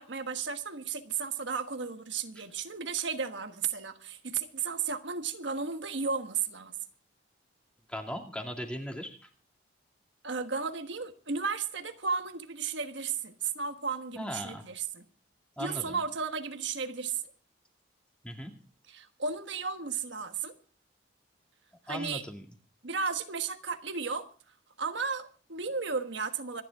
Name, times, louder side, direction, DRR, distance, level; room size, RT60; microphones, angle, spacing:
voice 1, 0.0-6.7 10.2-15.0 15.6-17.2 18.9-20.6 21.9-22.2 22.8-24.3 24.8-26.6, right 5 dB, 75° right, 1.4 m, -34 dB
voice 2, 7.9-9.2 14.1-14.7 15.6-16.0 18.2-18.5 21.9-22.5, equal, 5° left, 2.3 m, -38 dB
26.0 x 10.5 x 3.5 m
head